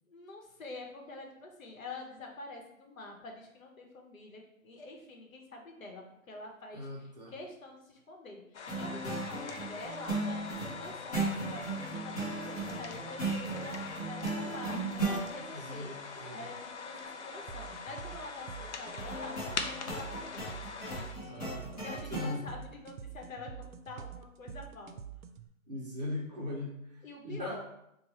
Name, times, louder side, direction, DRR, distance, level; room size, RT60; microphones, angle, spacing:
voice 1, 0.1-8.4 8.7-14.9 15.3-16.0 16.3-20.5 21.0-21.5 21.8-25.0 27.0-27.7, left 2 dB, 75° left, 1 dB, 1.0 m, -47 dB
voice 2, 6.7-7.3 15.4-16.5 21.3-21.8 22.1-22.4 25.7-27.0 27.2-27.6, left 1 dB, 30° right, -4 dB, 0.6 m, -39 dB
sound 1, 8.5-21.1, left 5 dB, 60° left, 0.5 m, -43 dB
sound 2, 8.7-15.2 19.0-22.4, right 3 dB, 30° left, 0.8 m, -36 dB
sound 3, 17.5-25.5, right 8 dB, 85° right, 0.5 m, -47 dB
2.9 x 2.2 x 4.1 m, 0.82 s
hypercardioid pair, 170°, 41 cm